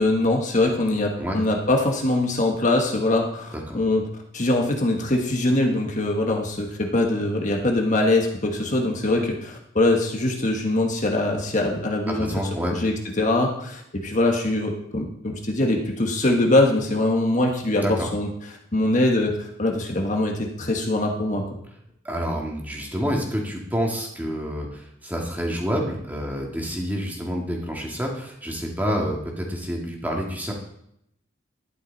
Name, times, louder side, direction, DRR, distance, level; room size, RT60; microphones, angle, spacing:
voice 1, 0.0-4.0 4.3-18.3 18.7-21.6, left 2 dB, 40° left, 1 dB, 1.5 m, -23 dB
voice 2, 12.1-12.8 17.8-18.1 22.0-30.5, equal, 10° right, -1 dB, 2.2 m, -28 dB
12.5 x 11.5 x 4.1 m, 0.74 s
head